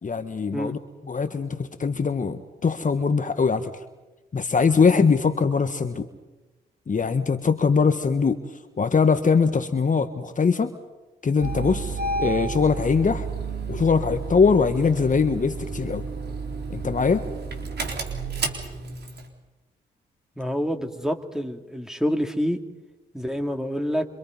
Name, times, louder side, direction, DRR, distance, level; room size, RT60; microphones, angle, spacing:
voice 1, 0.0-0.8 1.0-3.7 4.3-6.1 6.9-8.4 8.8-10.7 11.2-13.3 13.7-16.1 16.7-17.2, left 5 dB, 40° left, 9 dB, 1.5 m, -22 dB
Engine starting, 11.4-19.3, right 4 dB, 55° right, 4.0 m, -31 dB
voice 2, 20.4-22.6 23.1-24.1, equal, 5° right, 5 dB, 2.9 m, -27 dB
27.0 x 25.5 x 5.4 m, 1.1 s
hypercardioid pair, 45°, 20 cm